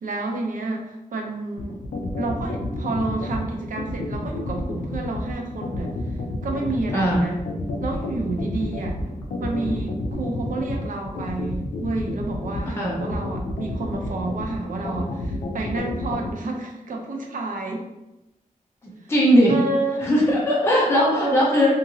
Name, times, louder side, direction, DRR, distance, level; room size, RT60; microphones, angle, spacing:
voice 1, 0.0-1.8 2.2-6.2 6.4-7.4 7.8-9.0 9.4-17.9 19.5-20.1 20.9-21.8, right 2 dB, 75° right, 1 dB, 0.5 m, -29 dB
sound 1, 1.6-16.3, left 2 dB, 75° left, 0.4 m, -30 dB
voice 2, 19.1-19.5 20.0-21.7, equal, 20° left, -5 dB, 0.5 m, -19 dB
2.9 x 2.5 x 2.6 m, 0.97 s
wide cardioid pair, 175°, 14 cm